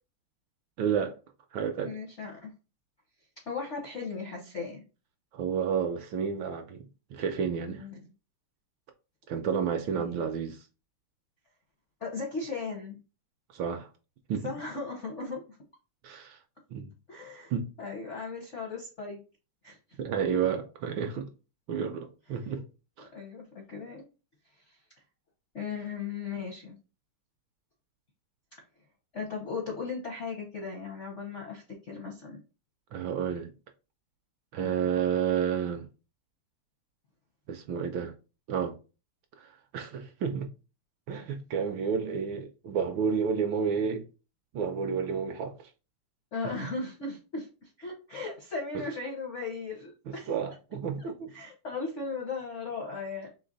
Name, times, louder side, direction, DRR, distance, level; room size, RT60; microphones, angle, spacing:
voice 1, 0.8-1.2 1.5-2.0 5.3-7.8 9.3-10.6 13.5-13.9 14.3-14.5 16.0-16.4 16.7-16.9 17.5-17.7 20.0-21.3 21.7-22.6 23.0-23.1 32.9-33.5 34.5-35.9 37.5-38.1 38.5-38.8 39.4-40.5 41.1-44.1 44.5-45.6 48.7-48.8 50.1-51.3, right 7 dB, 75° right, 1.2 m, -31 dB
voice 2, 1.8-2.5 3.5-4.8 7.7-8.0 9.9-10.2 12.0-13.0 14.4-15.6 17.1-17.5 17.8-19.2 19.6-19.8 22.4-22.6 23.1-24.1 24.7-24.8 25.5-26.8 29.1-32.4 34.6-34.7 46.3-50.3 51.0-53.3, left 4 dB, 65° left, 0.7 m, -37 dB
3.9 x 3.1 x 3.8 m
omnidirectional pair, 2.4 m